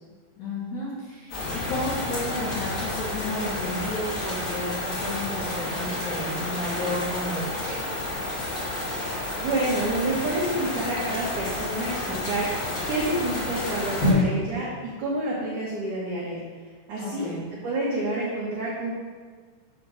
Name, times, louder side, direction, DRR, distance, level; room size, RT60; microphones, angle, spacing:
voice 1, 0.4-7.9 17.0-17.5, left 1 dB, 60° left, -9 dB, 2.0 m, -32 dB
sound 1, 1.3-14.1, left 1 dB, 35° left, 2.5 m, -30 dB
voice 2, 9.4-12.5 12.9-14.7 15.0-16.4 16.9-17.3 17.6-18.9, right 1 dB, 90° right, -5 dB, 1.7 m, -28 dB
7.6 x 4.5 x 6.8 m, 1.5 s
omnidirectional pair, 5.6 m